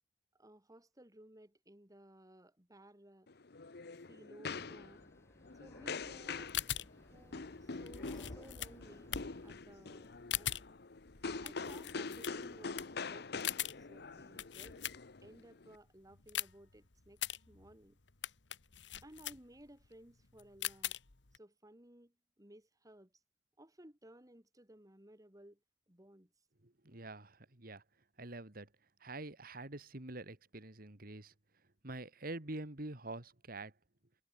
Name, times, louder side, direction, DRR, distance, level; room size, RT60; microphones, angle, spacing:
voice 1, 0.3-3.3 4.1-5.0 5.5-6.5 7.0-9.1 9.4-10.8 11.4-13.5 13.8-14.9 15.2-18.0 19.0-21.0 21.3-23.1 23.6-25.6 25.9-26.3, right 1 dB, 20° right, 3.5 m, -59 dB
sound 1, 3.3-15.7, left 4 dB, 65° left, 1.0 m, -45 dB
sound 2, 4.5-9.5, left 1 dB, 15° left, 1.5 m, -62 dB
sound 3, 6.2-15.4 15.8-21.4, left 11 dB, 90° left, 1.8 m, -42 dB
voice 2, 26.6-27.8 28.2-28.7 29.0-31.3 31.8-33.7, right 2 dB, 55° right, 2.4 m, -46 dB
head